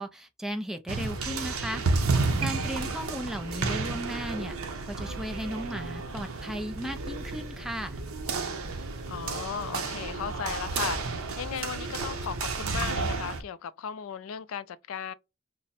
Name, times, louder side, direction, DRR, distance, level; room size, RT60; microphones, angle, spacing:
voice 1, 0.0-1.8 2.4-4.6 4.9-8.0, equal, ahead, 0.3 m, -35 dB
sound 1, 0.9-13.4, right 3 dB, 85° right, 0.7 m, -31 dB
voice 2, 2.6-3.0 9.1-15.1, left 8 dB, 75° left, 0.3 m, -36 dB
3.6 x 2.1 x 4.1 m
head